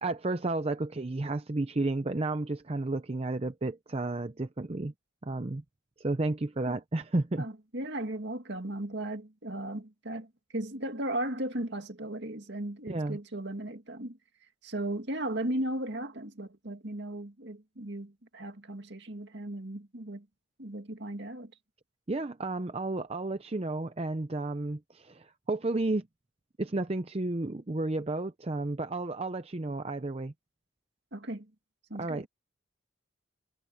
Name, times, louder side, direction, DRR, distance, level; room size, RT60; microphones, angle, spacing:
voice 1, 0.0-4.9 5.2-5.6 6.0-7.4 12.8-13.2 22.1-26.1 26.6-30.3 31.9-32.3, right 2 dB, 30° right, 0.6 m, -32 dB
voice 2, 7.4-14.2 14.6-20.3 20.6-21.5 31.1-31.5 31.9-32.3, right 1 dB, 60° right, 2.3 m, -36 dB
head